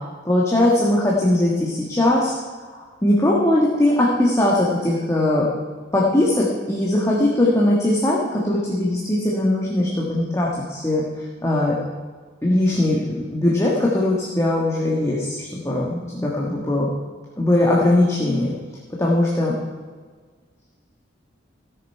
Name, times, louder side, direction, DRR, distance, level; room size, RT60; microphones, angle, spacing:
voice 1, 0.2-2.3 2.7-5.4 5.9-11.0 11.4-11.8 12.4-16.9 17.4-18.5 19.0-19.5, left 1 dB, 15° left, -4 dB, 1.4 m, -20 dB
17.0 x 6.9 x 4.6 m, 1.5 s
head